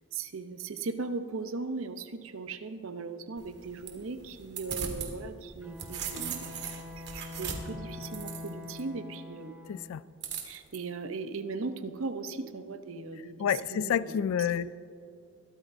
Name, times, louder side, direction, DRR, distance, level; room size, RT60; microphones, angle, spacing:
voice 1, 0.1-9.6 10.4-14.2 14.6-14.7, right 4 dB, 70° right, 9 dB, 0.8 m, -38 dB
sound 1, 3.4-5.1 5.5-8.8 10.2-10.8, right 7 dB, 55° right, 1.8 m, -39 dB
Bowed string instrument, 5.6-9.9, left 2 dB, 5° right, 1.1 m, -44 dB
voice 2, 9.7-10.0 13.4-14.7, left 8 dB, 75° left, 17 dB, 0.3 m, -29 dB
22.0 x 13.0 x 2.7 m, 2.5 s
head